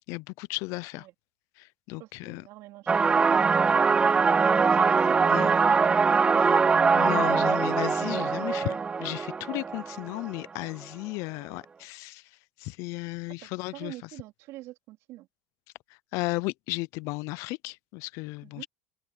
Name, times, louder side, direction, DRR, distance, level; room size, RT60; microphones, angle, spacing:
voice 1, 0.1-1.1 1.6-2.4 5.3-5.5 6.9-12.2 12.6-13.9 16.1-18.7, left 24 dB, 65° left, 0.6 m, -34 dB
voice 2, 2.0-6.6 13.4-15.3 18.4-18.7, right 17 dB, 60° right, 3.8 m, -46 dB
sound 1, 2.9-10.4, right 5 dB, 20° right, 0.4 m, -22 dB
open air
supercardioid pair, 120°, 6 cm